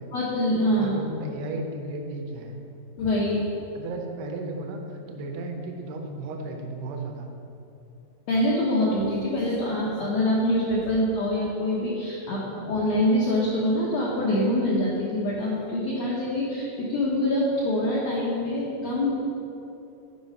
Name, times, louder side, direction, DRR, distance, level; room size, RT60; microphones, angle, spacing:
voice 1, 0.1-0.9 3.0-3.4 8.3-19.2, left 1 dB, 85° left, -6 dB, 1.5 m, -25 dB
voice 2, 0.7-2.6 3.8-7.3, right 2 dB, 80° right, 3 dB, 2.8 m, -34 dB
10.0 x 5.0 x 5.3 m, 2.8 s
omnidirectional pair, 4.7 m